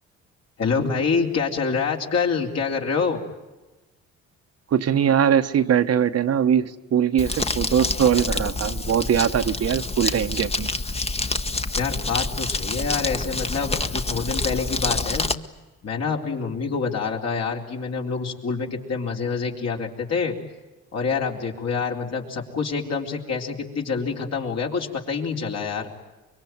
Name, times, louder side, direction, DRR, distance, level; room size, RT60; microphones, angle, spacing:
voice 1, 0.6-3.2 11.8-15.3 15.8-20.4 20.9-25.9, left 5 dB, 60° left, 1 dB, 4.2 m, -26 dB
voice 2, 4.7-10.7, right 8 dB, 55° right, 9 dB, 1.2 m, -21 dB
Crumpling crinkling, 7.2-15.3, left 3 dB, 20° left, 1.2 m, -27 dB
25.0 x 23.0 x 9.4 m, 1.1 s
cardioid pair, 90°, 30 cm